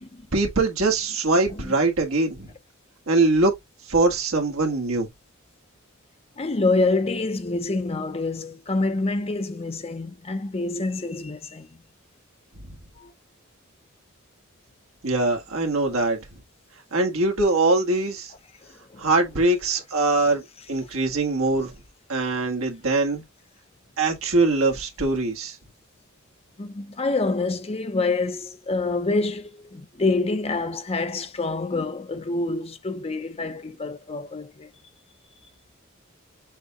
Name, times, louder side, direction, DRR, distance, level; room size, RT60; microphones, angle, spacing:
voice 1, 0.3-2.5 3.1-3.5 3.9-5.1 12.7-12.8 15.0-16.2 16.9-18.3 19.0-20.4 20.7-21.7 22.1-23.2 24.0-25.5, right 2 dB, 80° right, 1.5 m, -22 dB
voice 2, 6.4-11.7 13.0-13.1 18.9-19.1 26.6-34.7, left 3 dB, 30° left, 0.6 m, -27 dB
6.5 x 2.2 x 3.6 m
head